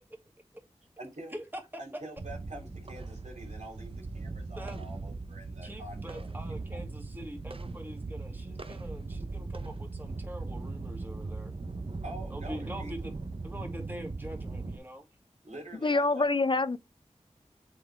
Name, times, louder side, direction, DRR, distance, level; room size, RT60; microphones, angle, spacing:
voice 1, 1.0-1.3 1.8-6.8 12.0-12.9 15.4-16.3, right 1 dB, 75° right, 3.0 m, -46 dB
sound 1, 2.2-14.8, right 3 dB, 50° right, 0.8 m, -39 dB
voice 2, 4.3-4.8 5.6-11.5 12.3-13.2 13.4-15.1, equal, 15° right, 2.4 m, -44 dB
voice 3, 15.8-16.8, left 3 dB, 40° left, 0.5 m, -26 dB
7.8 x 4.1 x 3.4 m
wide cardioid pair, 50°, 12 cm